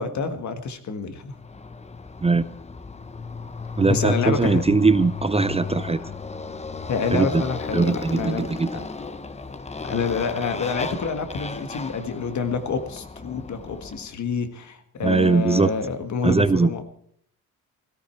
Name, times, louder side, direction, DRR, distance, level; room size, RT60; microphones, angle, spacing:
voice 1, 0.0-1.4 3.9-4.6 6.9-8.8 9.8-16.8, left 5 dB, 60° left, 8 dB, 1.8 m, -28 dB
Motorcycle, 1.4-14.1, left 4 dB, 20° left, 0.9 m, -34 dB
voice 2, 3.8-6.1 7.1-7.4 7.7-8.8 15.0-15.7 16.2-16.7, right 4 dB, 20° right, 14 dB, 0.5 m, -20 dB
16.5 x 14.0 x 4.5 m, 0.64 s
cardioid pair, 100°, 32 cm